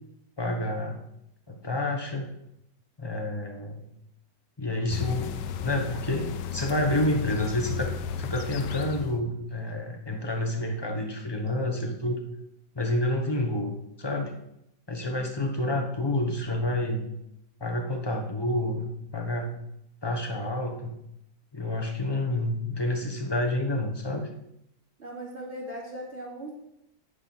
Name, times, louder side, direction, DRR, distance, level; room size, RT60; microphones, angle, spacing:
voice 1, 0.4-1.1 1.5-2.3 3.0-3.9 4.6-5.3 5.6-7.9 8.2-12.2 12.7-14.3 14.9-17.1 17.6-19.5 20.0-21.0 21.5-24.3, left 1 dB, 15° left, 2 dB, 1.0 m, -29 dB
sound 1, 4.9-9.2, left 7 dB, 90° left, 1.3 m, -34 dB
voice 2, 25.0-26.5, right 1 dB, 40° right, -4 dB, 3.2 m, -39 dB
9.7 x 5.1 x 7.1 m, 0.79 s
omnidirectional pair, 1.8 m